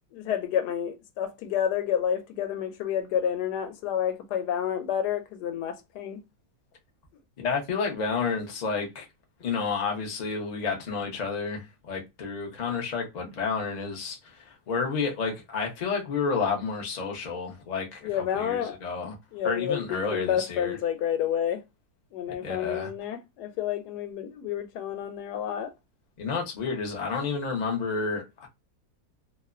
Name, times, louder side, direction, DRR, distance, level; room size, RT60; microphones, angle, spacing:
voice 1, 0.1-6.2 18.0-18.8 19.3-21.6 22.1-25.7, left 9 dB, 80° left, 1.1 m, -29 dB
voice 2, 7.4-9.1 9.4-18.1 18.3-19.1 19.4-20.8 22.4-22.9 26.2-28.5, left 5 dB, 60° left, 0.4 m, -30 dB
2.8 x 2.1 x 2.3 m
omnidirectional pair, 1.8 m